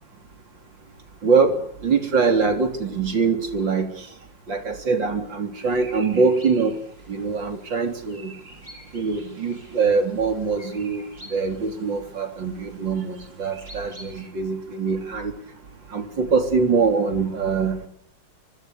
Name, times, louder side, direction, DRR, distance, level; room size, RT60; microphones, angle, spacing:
voice 1, 1.2-1.5 1.8-3.9 4.5-6.7 7.1-8.3 8.9-11.0 11.3-15.3 15.9-17.9, right 5 dB, 85° right, 6 dB, 4.3 m, -23 dB
sound 1, 5.5-14.3, right 1 dB, 30° right, 6.7 m, -48 dB
25.0 x 24.0 x 6.8 m, 0.68 s
omnidirectional pair, 2.0 m